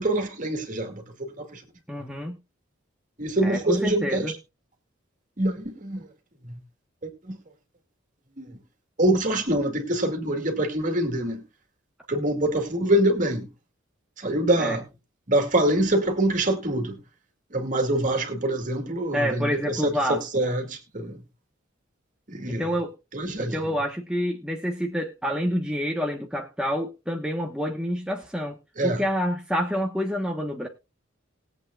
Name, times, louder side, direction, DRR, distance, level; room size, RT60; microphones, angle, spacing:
voice 1, 0.0-1.6 3.2-4.3 5.4-6.1 6.5-6.6 7.2-7.4 8.4-8.5 9.0-11.4 12.1-13.5 14.2-14.8 15.3-17.0 17.5-21.2 22.3-22.7 23.1-23.7 28.8-29.0, right 1 dB, 40° right, 2.3 m, -25 dB
voice 2, 1.9-2.4 3.4-4.3 14.6-14.8 19.1-20.2 22.5-22.9 23.4-28.6 28.8-30.7, equal, 5° right, 1.2 m, -28 dB
20.0 x 8.1 x 2.4 m
head